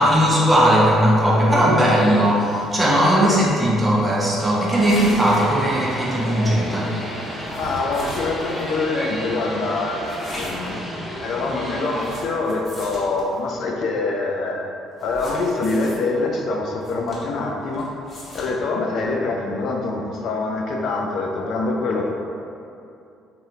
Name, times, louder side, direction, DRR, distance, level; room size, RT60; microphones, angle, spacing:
voice 1, 0.0-7.0 7.3-7.4, equal, 20° right, -5 dB, 0.9 m, -18 dB
voice 2, 3.2-3.6 7.5-10.0 10.3-10.8 11.2-14.6 15.0-17.9 18.3-22.1, left 3 dB, 60° left, 0 dB, 0.4 m, -25 dB
sound 1, 4.7-12.2, equal, 15° left, 1.2 m, -32 dB
sound 2, 4.8-5.9 7.5-8.7 10.1-10.8 11.9-13.4 15.0-16.0 16.8-17.4 17.7-18.5, left 1 dB, 35° left, 1.1 m, -36 dB
3.2 x 2.6 x 2.7 m, 2.6 s
hypercardioid pair, 55°, 0 cm